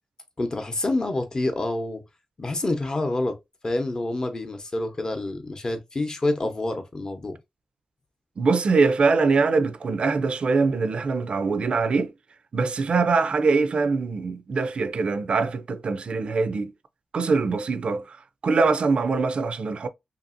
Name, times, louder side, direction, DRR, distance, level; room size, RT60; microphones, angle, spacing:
voice 1, 0.4-2.0 2.4-3.4 3.6-7.4, left 2 dB, 35° left, 0.7 m, -27 dB
voice 2, 8.4-12.1 12.5-16.7 17.1-18.2 18.4-19.9, right 4 dB, 60° right, 0.3 m, -23 dB
2.8 x 2.6 x 2.5 m
cardioid pair, 75°, 2 cm